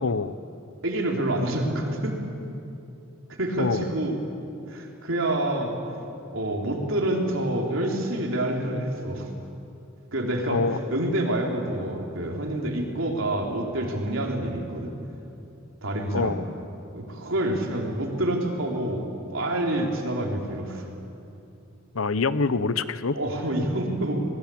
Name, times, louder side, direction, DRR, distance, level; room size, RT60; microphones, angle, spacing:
voice 1, 0.0-0.4 3.6-3.9 10.5-10.8 16.1-16.4 21.9-23.2, left 4 dB, 90° left, 15 dB, 0.9 m, -25 dB
voice 2, 0.8-2.2 3.4-4.1 4.7-5.8 6.3-9.3 10.1-10.6 10.9-14.9 15.8-16.4 16.9-20.9 23.1-24.2, right 1 dB, 70° right, 1 dB, 4.0 m, -27 dB
26.5 x 21.0 x 8.8 m, 2.8 s
head